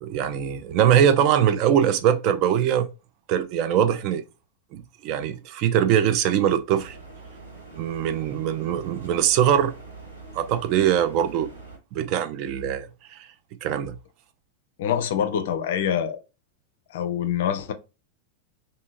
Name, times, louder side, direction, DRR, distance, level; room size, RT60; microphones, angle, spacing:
voice 1, 0.0-2.9 3.3-4.2 4.7-7.0 7.7-9.7 10.3-11.5 11.9-13.3 13.6-14.0, right 9 dB, 40° right, 0.3 m, -22 dB
sound 1, 6.8-11.8, right 3 dB, 85° right, 1.1 m, -43 dB
voice 2, 14.8-16.2 16.9-17.7, left 9 dB, 55° left, 0.4 m, -25 dB
2.7 x 2.6 x 2.4 m
figure-of-eight pair, 90°, 0 cm